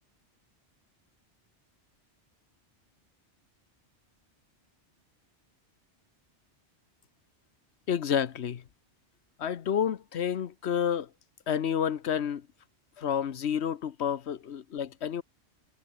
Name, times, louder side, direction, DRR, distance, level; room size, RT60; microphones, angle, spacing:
voice 1, 7.9-8.6 9.4-11.1 11.5-12.5 13.0-15.2, left 8 dB, 70° left, 1.2 m, -29 dB
omnidirectional pair, 1.2 m